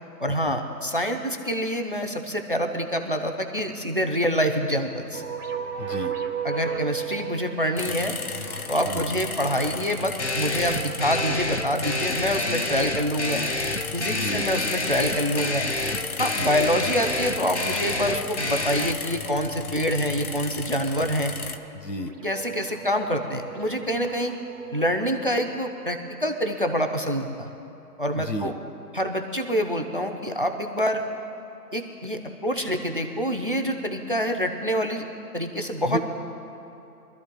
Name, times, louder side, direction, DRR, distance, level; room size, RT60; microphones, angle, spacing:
voice 1, 0.2-5.2 6.4-8.2 8.7-13.5 13.9-15.7 16.2-21.3 22.2-24.3 24.7-27.5 28.0-28.5 28.9-31.0 31.7-35.0 35.3-36.0, equal, 35° right, 6 dB, 0.7 m, -26 dB
sound 1, 5.1-12.1 15.1-16.7 19.4-20.0 20.4-20.6 21.1-21.2 21.6-25.1, right 8 dB, 70° right, 1.5 m, -37 dB
voice 2, 5.8-6.1 8.8-9.2 14.1-14.7 16.3-16.5 21.7-22.1 28.1-28.5 35.9-36.0, left 2 dB, 80° left, 8 dB, 1.5 m, -32 dB
sound 2, 7.8-21.6, left 5 dB, 60° left, 0.9 m, -35 dB
sound 3, 10.2-18.9, left 2 dB, 45° left, 0.6 m, -29 dB
25.0 x 13.0 x 2.3 m, 2.8 s
hypercardioid pair, 180°, 48 cm